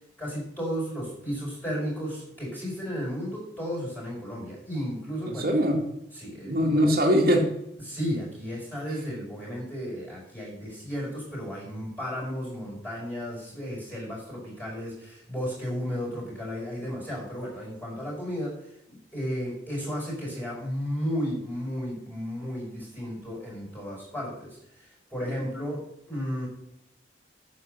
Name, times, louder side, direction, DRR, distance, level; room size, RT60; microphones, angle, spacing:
voice 1, 0.2-5.5 6.1-6.8 7.8-26.5, equal, 10° left, -4 dB, 5.3 m, -34 dB
voice 2, 5.3-5.8 6.4-7.4, equal, 55° right, -1 dB, 2.1 m, -22 dB
9.6 x 7.4 x 6.8 m, 0.79 s
head